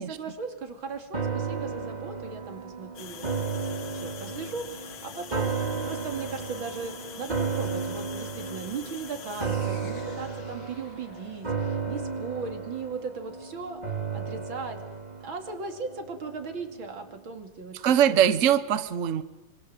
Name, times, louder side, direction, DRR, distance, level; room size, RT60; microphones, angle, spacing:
voice 1, 0.0-14.8 15.2-18.4, right 4 dB, 90° right, 5 dB, 3.4 m, -38 dB
sound 1, 1.1-16.4 16.8-16.9, right 5 dB, 20° right, 2.4 m, -34 dB
sound 2, 3.0-12.8, left 7 dB, 90° left, 2.3 m, -45 dB
voice 2, 17.7-19.2, right 9 dB, 45° right, 13 dB, 1.2 m, -22 dB
26.0 x 25.5 x 7.8 m, 1.1 s
omnidirectional pair, 2.1 m